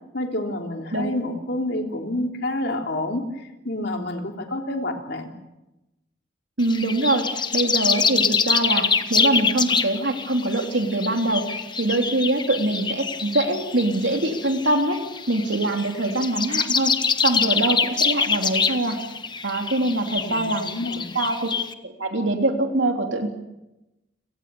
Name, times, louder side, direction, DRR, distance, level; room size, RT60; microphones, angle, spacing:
voice 1, 0.1-5.3 20.1-21.2, left 1 dB, 60° left, 3 dB, 3.5 m, -29 dB
sound 1, 6.6-21.7, left 5 dB, 25° left, 1.1 m, -25 dB
voice 2, 6.6-19.0 19.4-20.7 21.1-21.5 21.8-23.3, right 2 dB, 80° right, 3 dB, 3.4 m, -24 dB
29.5 x 18.5 x 7.1 m, 0.97 s
head